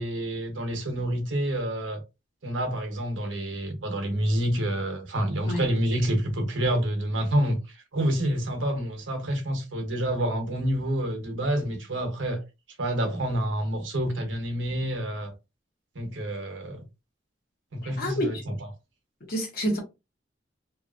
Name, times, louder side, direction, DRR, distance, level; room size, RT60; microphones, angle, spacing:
voice 1, 0.0-2.0 2.4-7.6 7.9-12.4 12.8-15.3 15.9-16.8 17.7-18.4, right 1 dB, 80° right, 0.9 m, -28 dB
voice 2, 17.8-18.4 19.3-19.8, equal, 50° left, 1.1 m, -28 dB
2.9 x 2.4 x 2.4 m
head